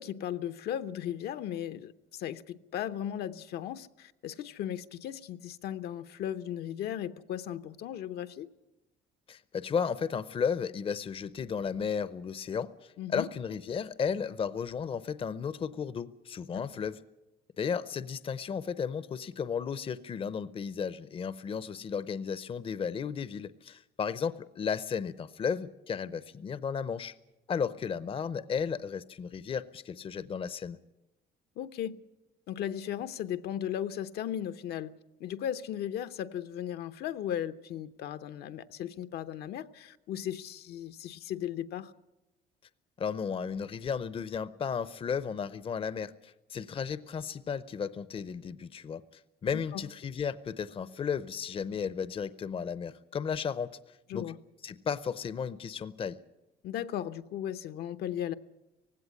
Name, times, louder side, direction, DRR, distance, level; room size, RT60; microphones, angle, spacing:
voice 1, 0.0-8.5 13.0-13.3 31.6-32.0 32.5-34.9 35.2-41.9 49.5-49.9 54.1-54.4 56.6-58.3, left 10 dB, 70° left, 0.9 m, -36 dB
voice 2, 9.3-17.0 17.6-27.1 27.5-30.8 43.0-49.0 49.4-53.8 54.1-54.3 54.6-56.2, left 6 dB, 35° left, 0.7 m, -34 dB
18.0 x 16.5 x 9.9 m
cardioid pair, 110°, 17 cm